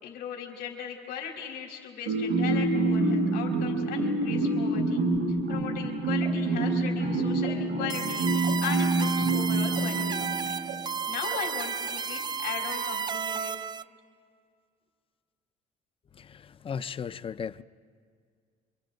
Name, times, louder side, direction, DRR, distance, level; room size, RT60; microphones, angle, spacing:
voice 1, 0.0-5.0 5.5-10.5 11.1-13.6, left 7 dB, 85° left, 0 dB, 4.0 m, -38 dB
sound 1, 2.1-10.8, right 2 dB, 75° right, 1.8 m, -27 dB
sound 2, 6.1-7.5 7.8-12.2, right 9 dB, 90° right, 1.9 m, -44 dB
sound 3, 7.9-13.8, right 6 dB, 25° right, 0.5 m, -33 dB
voice 2, 16.2-17.6, left 7 dB, 30° left, 16 dB, 0.5 m, -36 dB
27.5 x 24.5 x 4.0 m, 2.1 s
cardioid pair, 110°, 17 cm